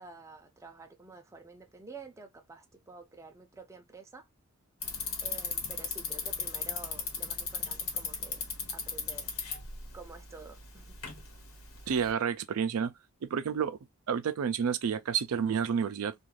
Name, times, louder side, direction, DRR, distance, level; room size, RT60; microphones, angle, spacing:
voice 1, 0.0-4.3 5.2-8.4 8.7-9.3 9.9-10.9, right 4 dB, 15° right, 0.4 m, -49 dB
Bicycle, 4.8-12.1, left 5 dB, 70° left, 1.1 m, -37 dB
voice 2, 11.9-12.9 13.2-13.8 14.1-16.1, right 7 dB, 75° right, 0.4 m, -30 dB
2.5 x 2.3 x 3.1 m
head